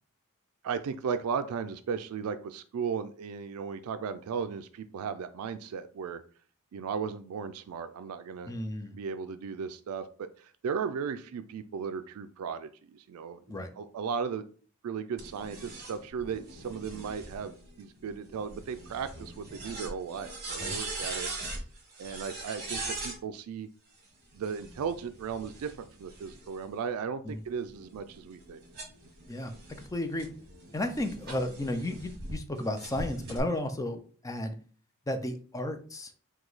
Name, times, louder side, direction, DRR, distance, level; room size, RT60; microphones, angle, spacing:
voice 1, 0.6-6.2 6.7-8.5 8.9-13.4 13.8-14.5 14.8-21.3 22.0-23.7 24.3-28.6, right 6 dB, 75° right, 11 dB, 0.3 m, -36 dB
voice 2, 8.5-9.0 13.5-13.7 20.6-20.8 27.2-27.4 29.3-29.5 29.9-30.3 30.7-34.6 35.1-36.1, left 1 dB, 15° left, 8 dB, 0.4 m, -33 dB
sound 1, 15.2-23.2 24.3-26.7 27.3-32.3 32.8-33.4, right 2 dB, 45° right, 1.3 m, -41 dB
4.8 x 2.2 x 3.9 m, 0.42 s
head